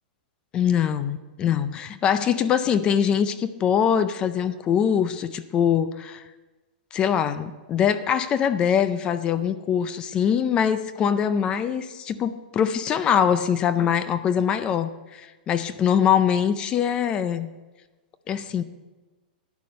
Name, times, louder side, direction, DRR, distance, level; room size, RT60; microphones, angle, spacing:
voice 1, 0.5-6.2 6.9-17.5 18.3-18.6, left 8 dB, 20° left, 13 dB, 0.4 m, -23 dB
11.5 x 9.5 x 5.4 m, 1.2 s
supercardioid pair, 165°, 5 cm